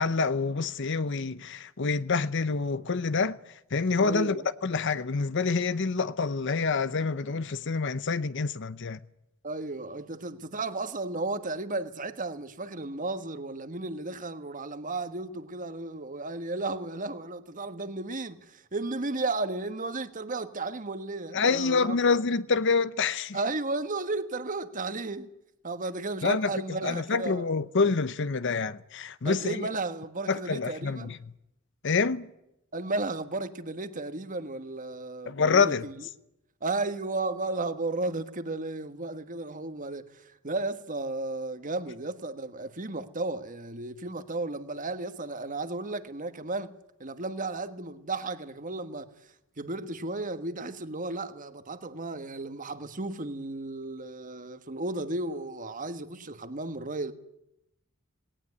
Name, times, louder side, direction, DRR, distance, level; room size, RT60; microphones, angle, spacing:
voice 1, 0.0-3.4 3.7-9.0 21.3-23.4 26.2-29.7 30.3-31.2 31.8-32.3 35.3-35.9, left 4 dB, 60° left, 0.8 m, -27 dB
voice 2, 4.0-4.5 9.4-22.0 23.3-25.3 25.6-27.4 29.2-31.1 32.7-35.9 36.6-46.7 47.0-49.1 49.6-57.1, right 2 dB, 40° right, 1.4 m, -34 dB
19.0 x 18.0 x 9.6 m
head